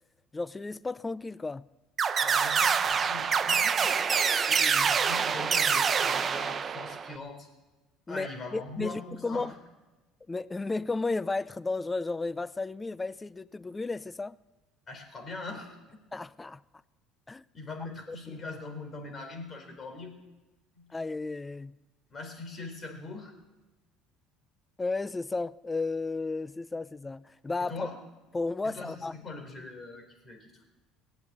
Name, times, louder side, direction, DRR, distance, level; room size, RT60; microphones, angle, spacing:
voice 1, 0.3-1.7 4.5-4.9 8.1-9.5 10.3-14.4 16.1-16.6 17.3-17.4 20.9-21.8 24.8-27.9 28.3-29.1, left 3 dB, 15° left, 0.4 m, -33 dB
sound 1, 2.0-7.1, right 6 dB, 35° right, 0.8 m, -26 dB
voice 2, 2.2-3.9 4.3-4.5 4.9-7.5 8.1-9.5 14.9-15.8 17.5-20.1 20.7-20.8 22.1-23.3 27.6-28.0 28.6-30.6, left 3 dB, 35° left, 4.4 m, -41 dB
20.0 x 8.0 x 8.8 m
supercardioid pair, 100°, 0 cm